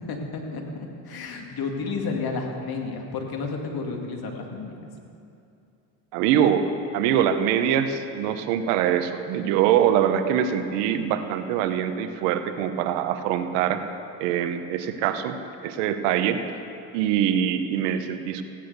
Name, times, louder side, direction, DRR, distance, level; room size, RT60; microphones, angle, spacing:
voice 1, 0.1-4.8, left 4 dB, 50° left, 2 dB, 2.4 m, -31 dB
voice 2, 6.1-13.8 14.2-15.4 15.6-16.4 16.9-18.4, right 9 dB, 90° right, 9 dB, 1.0 m, -23 dB
15.5 x 10.5 x 6.7 m, 2.7 s
supercardioid pair, 90°, 46 cm